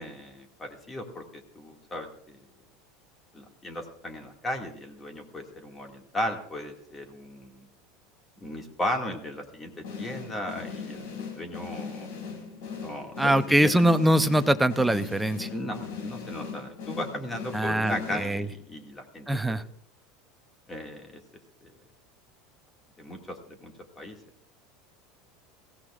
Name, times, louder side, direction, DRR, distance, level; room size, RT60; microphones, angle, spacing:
voice 1, 0.0-2.4 3.3-7.7 8.4-12.1 12.8-13.7 15.5-19.3 20.7-21.2 21.6-21.7 23.0-24.2, left 1 dB, 15° left, 3 dB, 2.1 m, -36 dB
sound 1, 9.8-18.6, left 5 dB, 75° left, 5.8 m, -39 dB
voice 2, 13.2-15.5 17.5-18.4 19.3-19.6, right 1 dB, 5° right, 10 dB, 0.6 m, -23 dB
23.0 x 16.0 x 2.5 m, 0.63 s
supercardioid pair, 150°, 0 cm